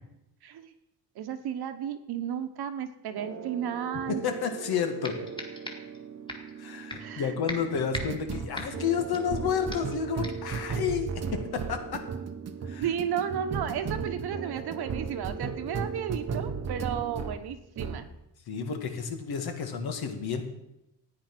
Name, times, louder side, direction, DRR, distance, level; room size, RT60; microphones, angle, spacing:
voice 1, 0.4-0.7 1.1-4.2 7.0-7.3 12.8-18.1, right 8 dB, 70° right, 9 dB, 1.3 m, -33 dB
sound 1, 3.2-17.4 17.8-18.1, right 5 dB, 40° right, 0.9 m, -36 dB
voice 2, 4.1-5.2 6.6-12.0 12.6-12.9 18.5-20.4, left 7 dB, 65° left, 6 dB, 2.0 m, -31 dB
sound 2, 4.5-4.6 5.0-6.0 6.3-6.5 6.9-7.2 7.5-9.4 9.7-10.0 10.2-10.5, left 1 dB, 10° left, 2.0 m, -40 dB
13.5 x 9.6 x 6.0 m, 0.87 s
cardioid pair, 155°, 40 cm